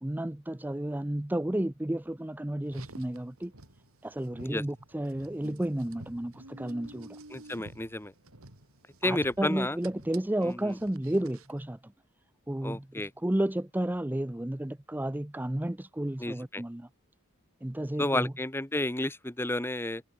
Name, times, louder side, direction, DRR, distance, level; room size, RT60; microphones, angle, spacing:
voice 1, 0.0-3.5 4.0-7.2 9.0-11.9 12.5-16.9 17.6-18.3, right 1 dB, 10° right, 0.5 m, -32 dB
Car, 2.6-11.6, right 2 dB, 90° right, 3.5 m, -51 dB
voice 2, 7.3-8.1 9.0-9.8 10.4-10.7 12.6-13.1 16.2-16.6 18.0-20.0, left 1 dB, 10° left, 1.3 m, -31 dB
head